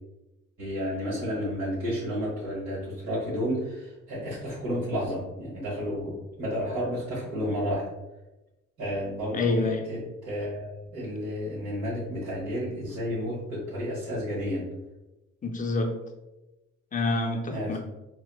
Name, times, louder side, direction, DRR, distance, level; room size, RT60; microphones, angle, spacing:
voice 1, 0.6-7.9 8.8-14.7 17.5-17.8, equal, 70° right, -9 dB, 1.4 m, -31 dB
voice 2, 9.3-9.9 15.4-16.0 16.9-17.8, left 2 dB, 25° left, 3 dB, 0.5 m, -27 dB
4.2 x 2.1 x 2.3 m, 1.0 s
cardioid pair, 90°, 30 cm